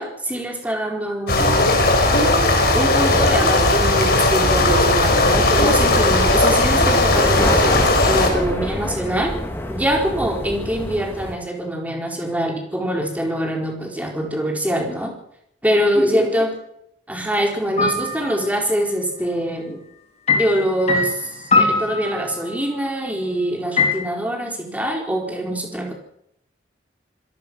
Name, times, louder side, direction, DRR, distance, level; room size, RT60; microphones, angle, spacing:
voice 1, 0.0-1.8 2.7-9.3 9.7-15.1 15.6-16.5 17.1-19.8 20.4-25.9, equal, 10° right, 1 dB, 4.4 m, -24 dB
sound 1, 1.3-8.3, left 2 dB, 50° left, 5.5 m, -17 dB
sound 2, 3.0-11.3, equal, 10° left, 2.6 m, -28 dB
sound 3, 17.8-18.5 20.3-22.6 23.8-23.9, left 3 dB, 35° left, 5.2 m, -21 dB
26.5 x 17.0 x 6.3 m, 0.73 s
head